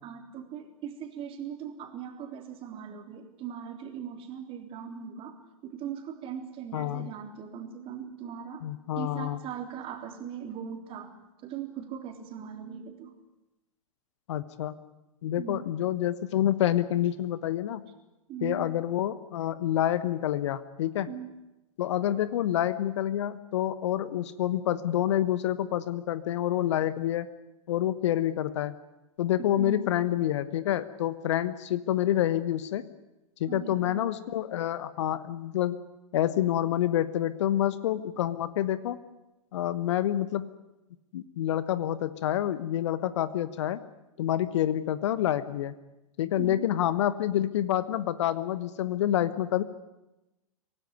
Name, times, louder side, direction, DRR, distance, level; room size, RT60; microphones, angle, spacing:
voice 1, 0.0-8.6 9.0-11.1 11.4-13.1 15.4-15.6 18.3-18.7 21.1-21.3 29.4-29.8 33.5-34.1 46.4-46.7, right 8 dB, 30° right, 5 dB, 3.6 m, -39 dB
voice 2, 6.7-7.1 8.6-9.4 14.3-14.7 15.2-17.8 18.4-21.1 21.8-27.3 27.7-28.7 29.2-32.8 33.4-35.8 36.1-39.0 39.5-40.5 41.1-43.8 44.2-45.7 46.2-49.6, left 12 dB, 55° left, 15 dB, 1.2 m, -28 dB
25.0 x 18.0 x 9.6 m, 0.98 s
figure-of-eight pair, 100°, 18 cm